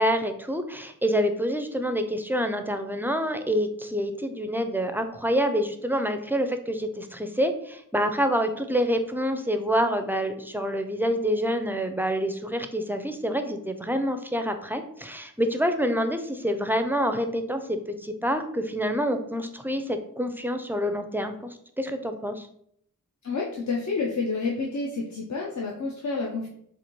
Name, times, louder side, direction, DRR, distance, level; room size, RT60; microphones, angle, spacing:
voice 1, 0.0-22.5, equal, 5° right, 7 dB, 0.4 m, -27 dB
voice 2, 23.2-26.5, left 4 dB, 55° left, -2 dB, 0.6 m, -29 dB
4.2 x 2.5 x 2.9 m, 0.69 s
wide cardioid pair, 50°, 33 cm